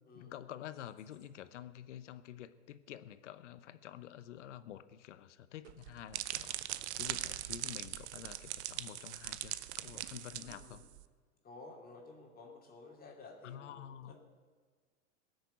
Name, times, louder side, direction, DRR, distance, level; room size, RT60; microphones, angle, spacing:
voice 1, 0.1-6.6 7.0-10.8 13.4-14.1, left 11 dB, 80° left, 14 dB, 0.9 m, -49 dB
sound 1, 5.6-11.0, right 14 dB, 65° right, 0.8 m, -41 dB
voice 2, 10.4-10.9 11.4-14.2, left 3 dB, 25° left, 0 dB, 2.5 m, -53 dB
17.5 x 6.7 x 8.1 m, 1.5 s
hypercardioid pair, 110°, 35 cm